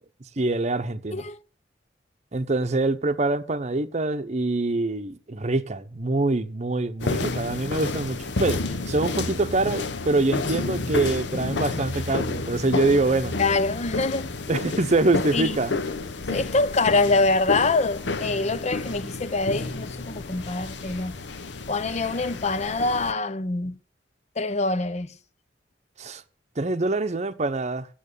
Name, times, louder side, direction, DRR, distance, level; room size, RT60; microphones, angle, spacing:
voice 1, 0.4-1.3 2.3-13.3 14.5-15.7 26.0-26.2 26.6-27.9, right 2 dB, 40° right, 0.8 m, -25 dB
sound 1, 7.0-23.1, left 3 dB, 75° left, 0.9 m, -30 dB
voice 2, 13.4-14.3 15.3-15.6 16.3-21.2 21.7-23.8 24.4-25.2, left 3 dB, 40° left, 0.7 m, -25 dB
9.0 x 7.4 x 8.4 m
head